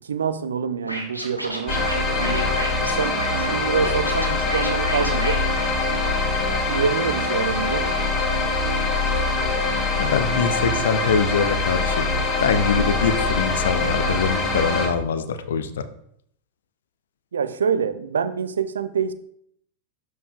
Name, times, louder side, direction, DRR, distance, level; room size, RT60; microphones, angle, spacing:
voice 1, 0.1-1.8 2.2-5.4 6.7-7.9 17.3-19.1, right 6 dB, 70° right, 14 dB, 0.4 m, -26 dB
Scratching (performance technique), 0.8-6.3, right 1 dB, 85° right, 1.2 m, -32 dB
sound 1, 1.7-14.9, left 3 dB, 25° left, 2.4 m, -23 dB
voice 2, 10.0-12.1 12.4-15.9, left 6 dB, 60° left, 10 dB, 0.6 m, -23 dB
12.0 x 4.7 x 2.4 m, 0.71 s
figure-of-eight pair, 90°, 0 cm